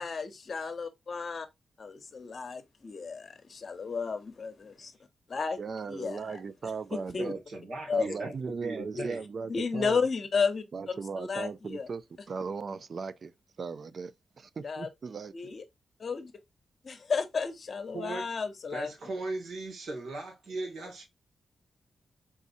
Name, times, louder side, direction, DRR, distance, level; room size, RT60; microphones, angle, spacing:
voice 1, 0.0-1.4 1.8-4.9 5.3-5.6 5.9-6.4 7.1-7.3 7.9-8.0 9.0-9.1 9.5-11.9 14.6-14.9 15.3-15.6 16.0-16.3 16.8-18.9, left 5 dB, 50° left, 0.9 m, -33 dB
voice 2, 5.6-7.4 7.9-10.0 10.7-13.3 13.6-15.3, right 5 dB, 55° right, 0.4 m, -37 dB
voice 3, 7.2-9.2 17.9-18.3 18.7-21.0, right 2 dB, 85° right, 1.9 m, -38 dB
4.1 x 3.6 x 2.6 m
cardioid pair, 70°, 0 cm